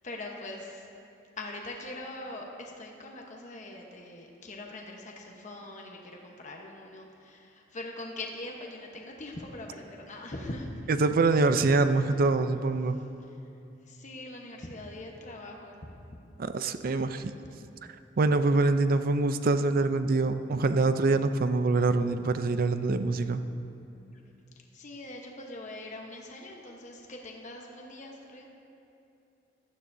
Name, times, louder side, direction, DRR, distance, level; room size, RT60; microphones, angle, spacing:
voice 1, 0.0-0.9 1.4-10.8 13.3-13.4 13.9-15.9 24.7-28.5, left 2 dB, 40° left, 0 dB, 1.0 m, -42 dB
voice 2, 11.0-13.0 16.4-17.3 18.2-23.4, right 3 dB, 50° right, 10 dB, 0.5 m, -25 dB
15.0 x 12.0 x 2.7 m, 2.8 s
head